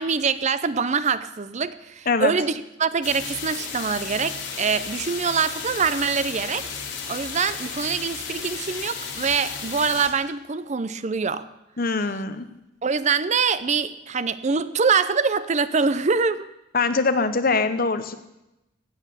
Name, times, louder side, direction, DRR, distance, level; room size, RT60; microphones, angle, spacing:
voice 1, 0.0-6.7 7.1-11.4 12.8-16.5, right 5 dB, 35° right, 14 dB, 0.6 m, -24 dB
sound 1, 3.0-10.1, left 6 dB, 70° left, 2.7 m, -34 dB
voice 2, 11.8-12.5 16.7-18.2, left 4 dB, 50° left, 10 dB, 1.0 m, -23 dB
16.5 x 9.2 x 6.9 m, 0.91 s
head